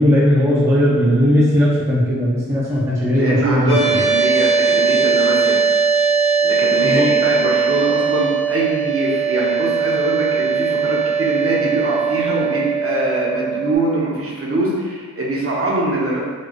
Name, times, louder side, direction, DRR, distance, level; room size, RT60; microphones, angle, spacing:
voice 1, 0.0-4.0 6.8-7.1, equal, 10° right, -6 dB, 0.4 m, -17 dB
voice 2, 3.1-5.6 6.4-16.2, right 2 dB, 45° right, -5 dB, 0.7 m, -22 dB
sound 1, 3.7-13.7, right 5 dB, 55° left, 0.9 m, -19 dB
4.1 x 2.2 x 3.0 m, 1.5 s
wide cardioid pair, 165°, 33 cm